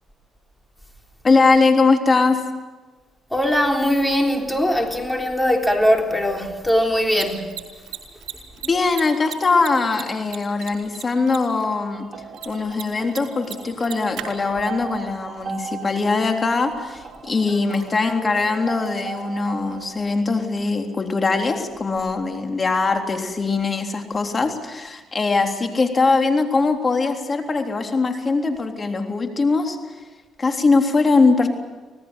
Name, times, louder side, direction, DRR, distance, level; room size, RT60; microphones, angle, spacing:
voice 1, 1.2-2.4 8.6-12.1 12.5-29.8 30.4-31.5, left 3 dB, 35° left, 3.5 m, -21 dB
voice 2, 3.3-7.5, equal, 5° left, 3.6 m, -20 dB
Mechanisms, 6.9-20.5, right 9 dB, 80° right, 4.6 m, -42 dB
sound 1, 11.9-19.9, right 5 dB, 45° right, 4.5 m, -38 dB
25.5 x 18.5 x 8.2 m
cardioid pair, 90°, 0 cm